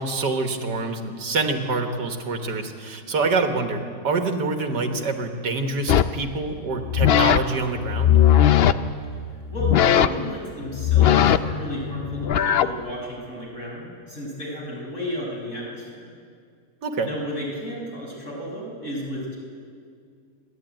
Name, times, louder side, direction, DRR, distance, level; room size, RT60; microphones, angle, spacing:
voice 1, 0.0-8.2 16.8-17.1, right 3 dB, 80° right, 5 dB, 2.1 m, -26 dB
sound 1, 5.9-6.2 6.8-7.4 7.8-8.7 9.5-10.3 10.7-12.7, left 10 dB, 80° left, 0.5 m, -18 dB
voice 2, 9.5-16.1 17.0-19.4, equal, 45° left, -4 dB, 6.4 m, -33 dB
27.5 x 11.5 x 9.1 m, 2.2 s
omnidirectional pair, 1.8 m